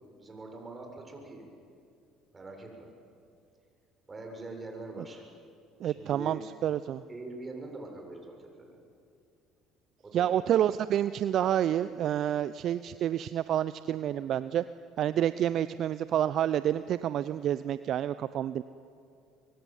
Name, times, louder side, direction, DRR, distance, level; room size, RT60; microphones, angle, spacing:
voice 1, 0.2-1.5 2.3-2.9 4.1-5.2 5.8-6.4 7.1-8.8 10.0-10.4, right 2 dB, 25° right, 2 dB, 7.2 m, -43 dB
voice 2, 5.8-7.0 10.1-14.6 15.0-18.6, right 11 dB, 55° right, 15 dB, 0.6 m, -28 dB
24.0 x 23.0 x 9.2 m, 2.4 s
hypercardioid pair, 65°, 0 cm